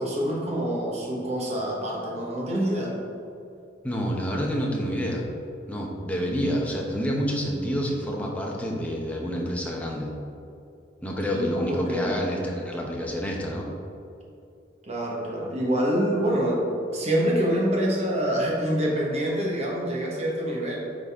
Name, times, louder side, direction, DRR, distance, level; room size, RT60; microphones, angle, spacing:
voice 1, 0.0-3.0 11.3-12.2 14.8-20.8, equal, 35° right, -3 dB, 1.4 m, -26 dB
voice 2, 3.8-5.2 5.7-10.1 11.0-13.7, equal, 10° left, -2 dB, 0.9 m, -28 dB
9.9 x 4.0 x 3.7 m, 2.6 s
head